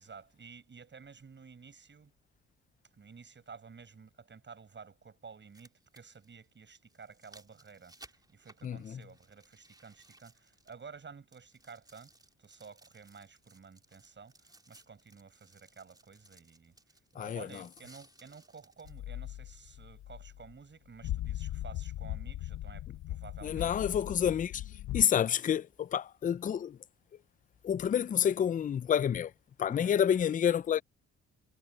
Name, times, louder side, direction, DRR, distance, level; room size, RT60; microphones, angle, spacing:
voice 1, 0.0-2.1 3.0-12.1 12.4-16.8 17.1-23.7 29.7-30.0, right 5 dB, 40° right, 8.0 m, -52 dB
sound 1, 2.0-2.1 4.1-4.2 5.3-11.0 11.3-19.0 19.6-19.7, right 2 dB, 15° right, 3.7 m, -61 dB
voice 2, 8.6-9.0 17.2-17.5 23.4-24.6 24.9-26.8 27.6-29.3 29.6-30.8, left 9 dB, 30° left, 0.4 m, -29 dB
sound 2, 18.8-20.5 21.0-25.0, left 13 dB, 75° left, 0.9 m, -39 dB
cardioid pair, 90°, 30 cm